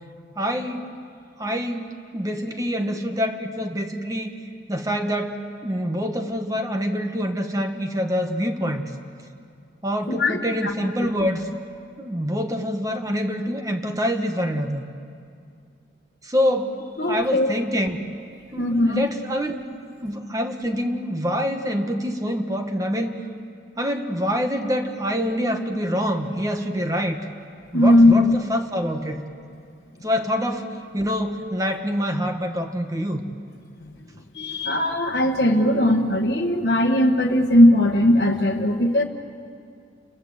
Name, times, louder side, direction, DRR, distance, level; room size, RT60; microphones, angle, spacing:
voice 1, 0.4-0.9 1.4-4.3 4.7-8.9 9.8-11.5 12.0-14.9 16.2-18.0 18.5-19.6 20.0-23.2 23.8-27.2 27.7-29.2 30.0-33.2, equal, 20° right, 5 dB, 1.3 m, -26 dB
voice 2, 10.1-10.7 17.0-17.5 18.6-19.0 27.7-28.4 33.8-33.9 34.3-39.0, left 1 dB, 60° left, 0 dB, 1.3 m, -18 dB
29.5 x 21.5 x 8.0 m, 2.4 s
head